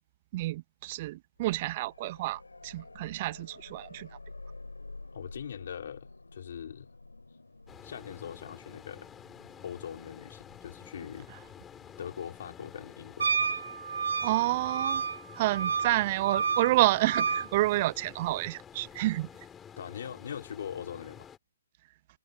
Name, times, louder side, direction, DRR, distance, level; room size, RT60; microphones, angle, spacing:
voice 1, 0.3-4.1 14.2-15.0 15.4-19.3, right 17 dB, 40° right, 0.3 m, -29 dB
sound 1, 1.4-14.3 16.6-16.7, left 3 dB, 90° left, 4.4 m, -51 dB
voice 2, 5.1-6.9 7.8-9.1 9.6-11.3 12.0-13.3 19.8-21.3, left 8 dB, 60° left, 3.6 m, -41 dB
sound 2, 7.7-21.4, left 8 dB, 15° left, 6.2 m, -50 dB
Wind instrument woodwind instrument, 13.2-17.5, right 6 dB, 70° right, 0.8 m, -30 dB
figure-of-eight pair, 130°, 0 cm